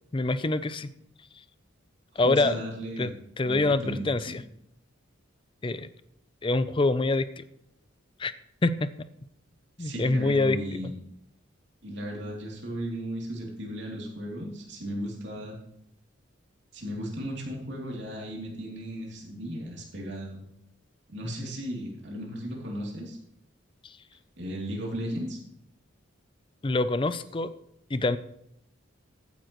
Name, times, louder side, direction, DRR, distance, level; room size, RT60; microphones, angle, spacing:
voice 1, 0.1-0.9 2.2-2.6 3.0-4.4 5.6-5.9 6.4-7.4 8.2-8.3 8.6-8.9 9.8-10.6 23.8-23.9 26.6-27.5 27.9-28.2, left 2 dB, 25° left, 14 dB, 0.5 m, -25 dB
voice 2, 2.2-3.2 3.4-4.3 9.8-11.0 11.8-15.6 16.7-20.4 21.1-23.2 24.4-25.4, equal, 60° right, -1 dB, 3.0 m, -35 dB
14.5 x 9.4 x 3.1 m, 0.75 s
head